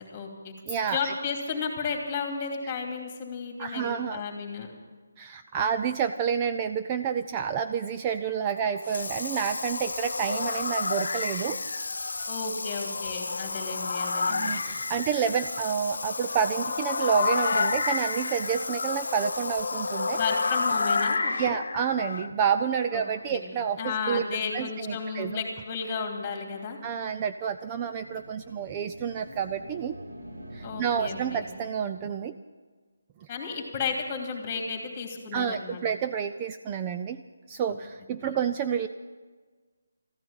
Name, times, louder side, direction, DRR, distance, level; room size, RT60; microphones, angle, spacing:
voice 1, 0.0-0.5 0.9-4.7 12.3-14.7 20.1-21.6 22.9-23.0 23.3-23.4 23.8-26.8 30.6-31.5 33.3-35.8 37.7-37.8 38.2-38.3, left 5 dB, 20° left, 2 dB, 2.7 m, -33 dB
voice 2, 0.7-1.1 3.6-4.2 5.2-11.6 14.3-20.2 21.4-24.3 24.5-25.4 26.8-30.0 30.5-32.3 33.2-33.3 35.3-37.2 37.5-38.9, right 7 dB, 20° right, 8 dB, 0.4 m, -29 dB
Water tap faucet / Sink (filling or washing), 8.8-21.3, left 3 dB, 80° left, 0.5 m, -36 dB
sound 1, 8.9-22.3, left 4 dB, 65° left, 1.0 m, -31 dB
sound 2, 27.4-32.1, right 1 dB, 85° right, 6.1 m, -45 dB
14.5 x 10.5 x 8.8 m, 1.4 s
hypercardioid pair, 165°, 0 cm